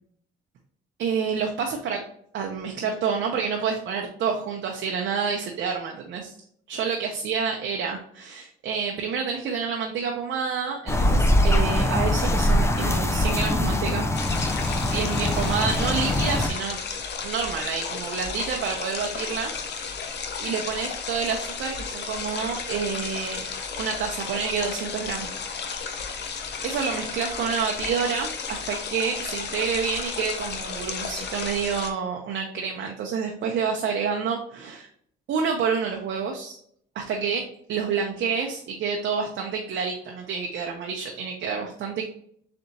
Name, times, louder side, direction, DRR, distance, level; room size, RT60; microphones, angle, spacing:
voice 1, 1.0-2.0 2.3-6.3 6.7-14.0 14.8-16.8 17.2-19.5 19.9-23.5 23.8-25.3 26.6-34.9 35.3-36.6 37.0-37.4 37.7-42.1, right 6 dB, 65° right, 1 dB, 0.6 m, -28 dB
sound 1, 10.9-16.5, left 1 dB, 15° left, 0.5 m, -23 dB
sound 2, 14.1-31.9, left 5 dB, 60° left, 0.7 m, -33 dB
3.9 x 3.4 x 2.7 m, 0.65 s
cardioid pair, 90°, 20 cm